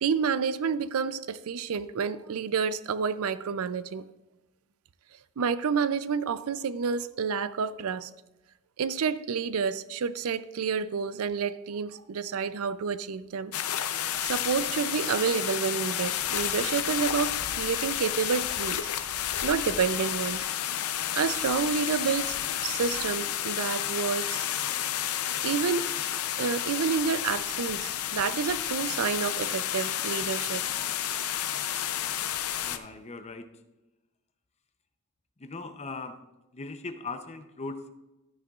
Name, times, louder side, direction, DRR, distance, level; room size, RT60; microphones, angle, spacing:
voice 1, 0.0-4.0 5.4-8.1 8.8-13.5 14.2-18.9 19.4-20.5 21.2-22.4 22.6-24.5 25.4-25.9 26.4-30.7, right 6 dB, 75° right, 14 dB, 0.4 m, -29 dB
sound 1, 13.5-32.8, left 10 dB, 85° left, 0.6 m, -31 dB
voice 2, 32.5-33.5 35.4-36.2 36.5-37.9, left 3 dB, 30° left, 8 dB, 0.7 m, -39 dB
13.0 x 9.6 x 2.4 m, 1.0 s
head